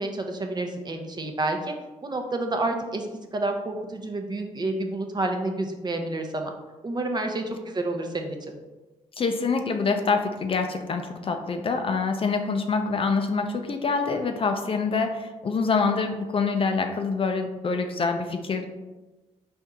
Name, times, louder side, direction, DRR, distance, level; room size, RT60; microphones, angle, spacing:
voice 1, 0.0-1.7 2.0-3.1 3.3-6.5 6.8-8.6, right 2 dB, 30° right, 4 dB, 0.6 m, -29 dB
voice 2, 9.2-18.7, left 4 dB, 45° left, 5 dB, 0.5 m, -26 dB
4.4 x 2.7 x 3.5 m, 1.1 s
cardioid pair, 65°, 13 cm